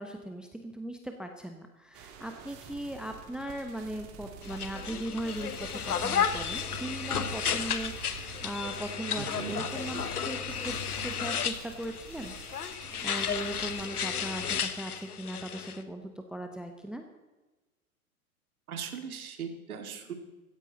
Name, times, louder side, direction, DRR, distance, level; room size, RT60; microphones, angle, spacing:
voice 1, 0.0-12.3 13.0-17.0, right 1 dB, ahead, 5 dB, 1.0 m, -38 dB
sound 1, 1.9-14.7, right 7 dB, 40° right, 2.6 m, -48 dB
sound 2, 4.4-15.8, left 7 dB, 80° left, 1.2 m, -33 dB
voice 2, 9.2-9.7 18.7-20.1, right 7 dB, 70° right, 6 dB, 2.4 m, -39 dB
17.0 x 14.0 x 4.1 m, 1.2 s
figure-of-eight pair, 100°, 45 cm